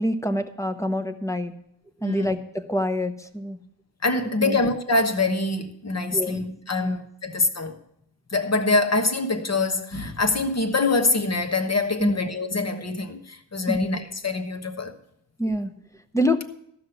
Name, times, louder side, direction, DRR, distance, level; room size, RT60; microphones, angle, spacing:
voice 1, 0.0-1.5 2.0-3.6 4.4-4.6 6.1-6.4 6.8-7.0 12.0-12.2 13.7-13.8 15.4-15.7 16.1-16.5, equal, 5° left, 0.8 m, -26 dB
voice 2, 4.0-7.7 8.3-14.9, left 3 dB, 35° left, 1.2 m, -24 dB
14.0 x 6.2 x 7.7 m
wide cardioid pair, 150°, 43 cm